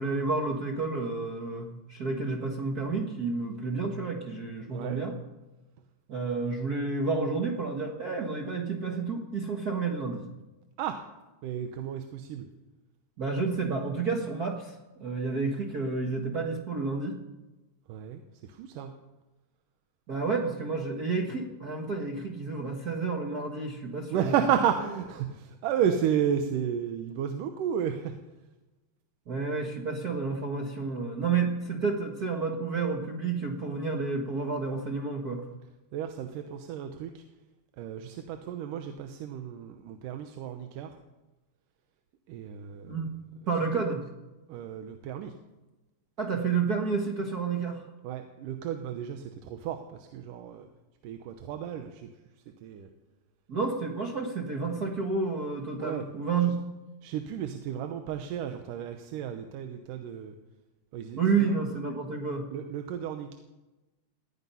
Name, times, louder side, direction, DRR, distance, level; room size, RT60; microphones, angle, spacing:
voice 1, 0.0-5.1 6.1-10.2 13.2-14.7 15.0-17.2 20.1-24.3 29.3-35.4 42.9-43.1 43.5-44.0 46.2-47.8 53.5-56.6 61.2-62.5, right 4 dB, 45° right, 2 dB, 1.3 m, -30 dB
voice 2, 4.6-5.0 10.8-11.0 11.4-12.5 17.9-18.2 18.5-18.9 24.1-28.2 35.9-37.2 37.8-41.0 42.3-43.0 44.5-45.3 48.0-50.7 51.0-52.1 52.6-52.9 55.8-56.1 57.0-60.3 60.9-61.6 62.5-63.4, right 9 dB, 85° right, 6 dB, 2.6 m, -32 dB
18.5 x 13.5 x 5.6 m, 1.1 s
omnidirectional pair, 3.7 m